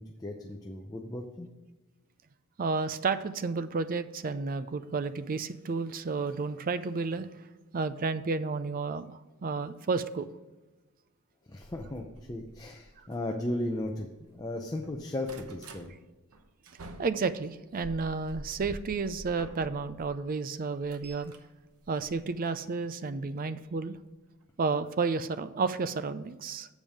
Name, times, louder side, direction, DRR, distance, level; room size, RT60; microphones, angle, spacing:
voice 1, 0.0-1.5 11.5-14.1 14.3-15.9, left 1 dB, 15° left, 1 dB, 0.6 m, -36 dB
voice 2, 2.6-7.3 7.7-10.3 17.0-21.3 21.9-24.0 24.6-26.7, right 4 dB, 40° right, 12 dB, 0.4 m, -31 dB
sound 1, 11.6-14.4 14.7-15.9 16.3-20.1 20.5-22.7 23.7-23.9 24.4-24.5 24.7-24.8, right 1 dB, 75° right, 0.9 m, -48 dB
7.2 x 5.2 x 6.3 m, 1.2 s
head